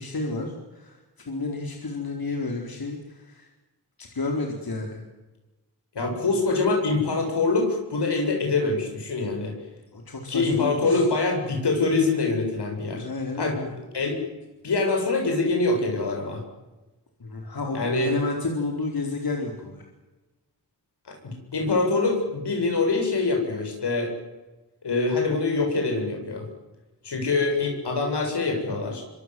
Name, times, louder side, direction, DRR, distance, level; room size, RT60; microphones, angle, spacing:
voice 1, 0.0-3.5 4.0-5.0 9.9-11.1 13.0-13.7 17.2-19.9, left 3 dB, 60° left, 2 dB, 4.4 m, -31 dB
voice 2, 5.9-9.6 10.3-13.1 13.4-13.6 13.9-14.2 14.6-16.4 17.7-18.2 21.1-24.1 24.8-26.5 27.0-29.0, left 3 dB, 85° left, 2 dB, 7.7 m, -24 dB
25.5 x 25.5 x 7.8 m, 1.1 s
cardioid pair, 60°, 39 cm